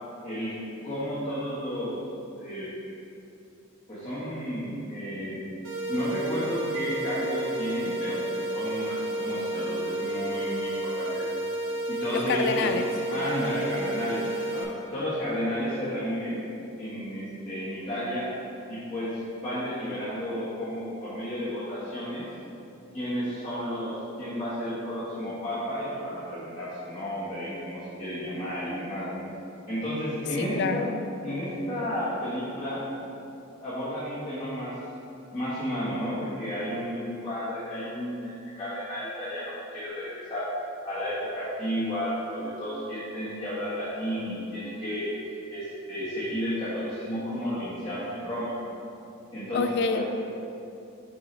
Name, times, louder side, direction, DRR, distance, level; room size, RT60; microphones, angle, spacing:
voice 1, 0.2-0.6 0.8-2.0 2.4-3.0 3.9-5.4 5.9-11.2 11.9-12.7 13.1-16.4 16.8-18.3 18.7-22.2 22.9-29.2 29.7-30.9 31.2-32.8 33.6-34.7 35.3-40.5 40.8-45.1 45.5-48.6 49.3-50.0, equal, 25° left, -12 dB, 1.3 m, -32 dB
sound 1, 5.6-14.6, right 1 dB, 65° right, 1.0 m, -31 dB
voice 2, 12.1-12.8 30.4-30.9 49.5-50.0, left 5 dB, 55° left, 8 dB, 0.4 m, -27 dB
6.8 x 4.7 x 3.2 m, 2.7 s
head